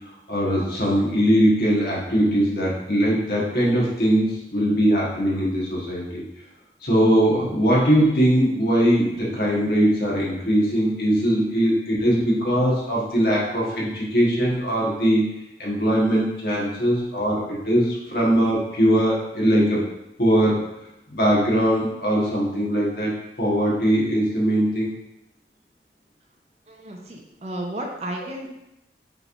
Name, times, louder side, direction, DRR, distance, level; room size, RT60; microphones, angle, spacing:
voice 1, 0.3-6.2 6.8-15.3 15.6-19.8 20.2-20.7 21.1-24.9, equal, 60° left, -5 dB, 1.4 m, -21 dB
voice 2, 26.7-28.5, right 1 dB, 35° right, 1 dB, 0.6 m, -33 dB
6.0 x 3.1 x 2.6 m, 0.89 s
head